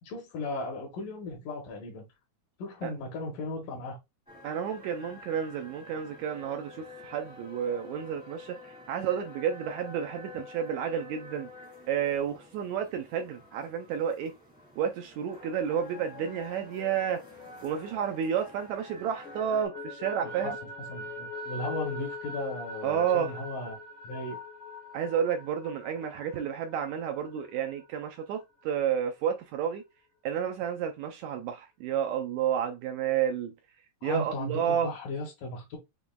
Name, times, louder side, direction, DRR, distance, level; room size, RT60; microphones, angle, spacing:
voice 1, 0.0-2.1 2.6-4.0 20.2-20.6 20.9-23.8 24.0-24.4 34.0-35.8, left 2 dB, 80° left, 2.7 m, -36 dB
sound 1, 4.3-19.7, left 3 dB, 5° right, 0.6 m, -49 dB
voice 2, 4.4-11.5 11.9-14.3 14.8-17.2 17.6-20.5 22.8-23.3 24.9-29.8 30.2-33.5 34.0-34.9, right 8 dB, 85° right, 1.6 m, -31 dB
sound 2, 15.9-18.6 19.0-28.4, left 2 dB, 60° left, 1.3 m, -43 dB
6.8 x 2.9 x 2.2 m
omnidirectional pair, 3.8 m